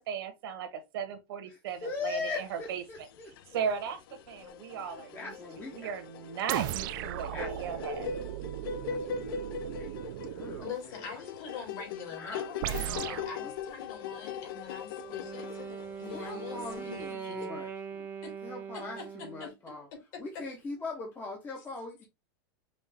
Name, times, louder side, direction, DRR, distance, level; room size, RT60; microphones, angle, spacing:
voice 1, 0.0-2.8 3.5-4.0 4.3-5.3 5.7-8.1, right 7 dB, 75° right, 1.2 m, -36 dB
voice 2, 1.5-3.3 4.8-6.0 7.3-7.9 8.9-9.4 9.8-11.2 11.5-11.7 12.2-12.5 12.7-13.5 16.0-17.7 18.4-19.9 20.2-22.0, left 3 dB, 15° left, 0.8 m, -41 dB
sound 1, 1.8-2.6 3.0-17.1, left 6 dB, 70° left, 0.5 m, -41 dB
sound 2, 6.5-10.8 12.6-13.3, right 14 dB, 60° right, 0.4 m, -37 dB
voice 3, 10.6-17.5 18.2-18.3 18.7-19.0 19.4-19.5, left 6 dB, 55° left, 2.5 m, -44 dB
Wind instrument woodwind instrument, 15.0-19.5, right 6 dB, 20° right, 0.6 m, -41 dB
5.4 x 2.4 x 3.4 m
supercardioid pair, 160°, 12 cm